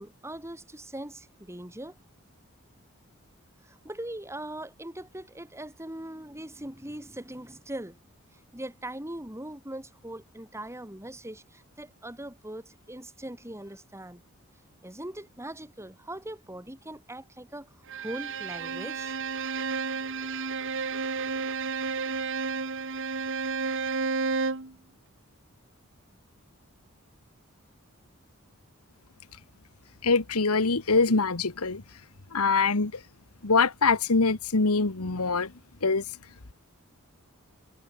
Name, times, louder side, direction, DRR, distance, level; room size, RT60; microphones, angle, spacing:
voice 1, 0.0-2.0 3.6-8.0 8.3-14.2 14.8-19.2, right 1 dB, 15° right, 6.9 m, -41 dB
Bowed string instrument, 17.9-24.7, right 4 dB, 60° right, 2.1 m, -31 dB
voice 2, 30.0-31.8 32.3-33.0 33.4-35.5 35.8-36.0, left 4 dB, 85° left, 1.5 m, -24 dB
head